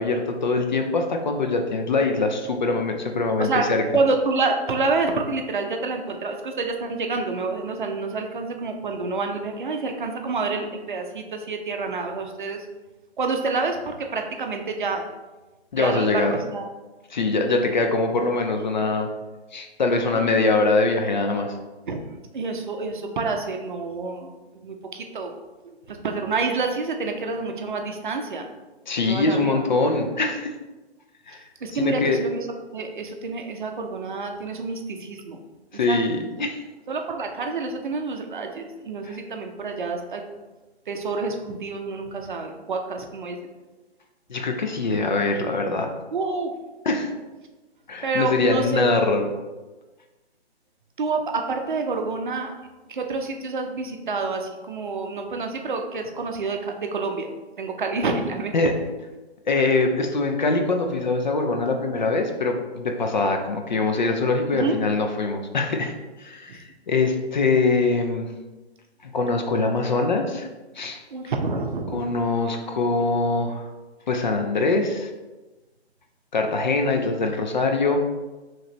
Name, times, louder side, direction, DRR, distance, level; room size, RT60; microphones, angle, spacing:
voice 1, 0.0-3.8 15.7-16.3 17.1-19.1 19.5-21.5 28.9-30.5 31.3-31.4 31.7-32.2 35.7-36.6 39.0-39.2 44.3-45.9 46.9-47.1 47.9-49.3 58.5-58.7 59.5-66.0 66.2-68.2 69.1-70.5 70.8-71.0 71.9-73.7 74.1-75.1 76.3-78.0, left 3 dB, 45° left, 4 dB, 0.5 m, -23 dB
voice 2, 3.9-12.6 13.2-15.1 15.8-16.3 16.5-16.7 17.3-17.6 20.1-20.4 21.9-22.0 22.3-24.3 24.6-25.3 25.6-28.5 29.1-29.6 31.6-32.4 32.7-35.4 35.9-36.0 36.9-40.2 40.9-43.4 46.1-46.5 48.0-48.9 51.0-52.5 52.9-58.5 64.5-64.8 66.5-66.6 71.1-72.0 76.8-77.0, right 3 dB, 50° right, 4 dB, 0.6 m, -28 dB
4.8 x 3.0 x 3.0 m, 1.2 s
figure-of-eight pair, 135°, 33 cm